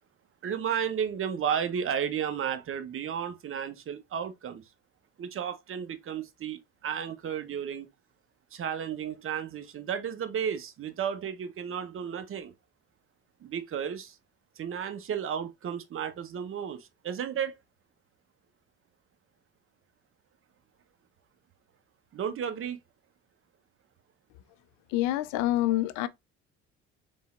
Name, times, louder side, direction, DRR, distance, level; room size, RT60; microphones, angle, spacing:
voice 1, 0.4-4.6 5.2-7.9 8.5-12.5 13.4-14.1 14.6-17.5 22.1-22.8, right 8 dB, 45° right, 1.0 m, -33 dB
voice 2, 24.9-26.1, left 15 dB, 85° left, 0.6 m, -26 dB
4.1 x 3.8 x 2.4 m
supercardioid pair, 80°, 29 cm